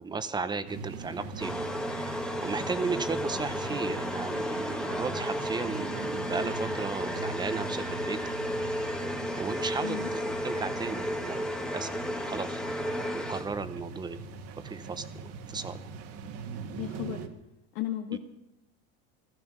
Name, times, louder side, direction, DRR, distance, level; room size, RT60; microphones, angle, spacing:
voice 1, 0.0-1.5 1.9-8.2 9.4-11.4 11.7-11.9 12.3-12.6 13.1-14.2 14.6-15.8 18.1-18.2, right 4 dB, 15° right, 12 dB, 0.7 m, -35 dB
sound 1, 0.7-17.3, right 4 dB, 50° right, 1.6 m, -41 dB
sound 2, 1.4-13.8, equal, ahead, 1.2 m, -33 dB
voice 2, 16.8-17.3 17.7-18.2, left 13 dB, 70° left, 1 dB, 1.6 m, -34 dB
15.5 x 14.0 x 6.1 m, 0.86 s
supercardioid pair, 150°, 31 cm